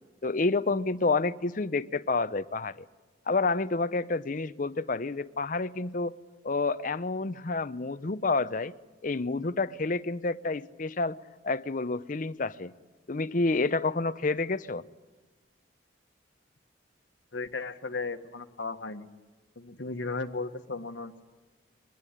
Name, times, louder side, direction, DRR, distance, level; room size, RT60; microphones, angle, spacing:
voice 1, 0.2-2.9 3.3-6.2 6.4-8.7 9.0-11.2 11.4-12.7 13.1-14.8, left 3 dB, 45° left, 13 dB, 0.7 m, -29 dB
voice 2, 17.3-19.1 19.5-21.2, left 3 dB, 75° left, 6 dB, 1.4 m, -35 dB
22.5 x 21.0 x 9.9 m, 1.2 s
head